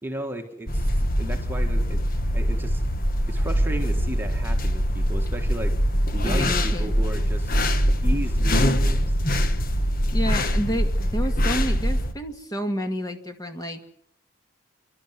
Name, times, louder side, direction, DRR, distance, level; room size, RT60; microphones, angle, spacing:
voice 1, 0.0-2.0 2.3-5.7 6.1-7.7 8.0-9.1, right 1 dB, 10° right, 3 dB, 1.7 m, -35 dB
sound 1, 0.7-12.1, equal, 40° left, 1.5 m, -23 dB
voice 2, 6.2-6.9 10.1-13.8, equal, 15° left, 5 dB, 2.0 m, -30 dB
28.5 x 12.5 x 9.3 m, 0.75 s
head